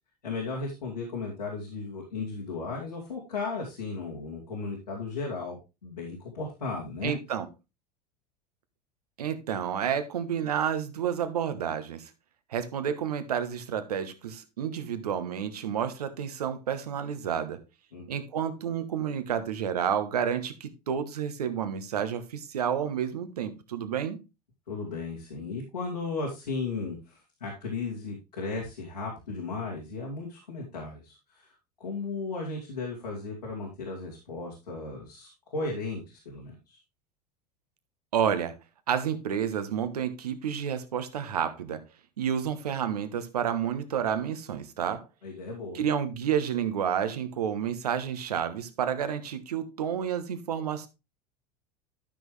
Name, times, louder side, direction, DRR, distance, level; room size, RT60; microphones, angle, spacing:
voice 1, 0.2-5.6 5.8-7.1 17.9-18.1 24.7-36.8 45.2-45.8, left 4 dB, 80° left, 2.7 m, -35 dB
voice 2, 7.0-7.5 9.2-12.1 12.5-17.6 18.1-24.2 38.1-38.5 38.9-41.8 42.2-45.0 45.7-50.9, right 8 dB, 70° right, 1.2 m, -30 dB
12.0 x 6.3 x 3.3 m
figure-of-eight pair, 75°, 20 cm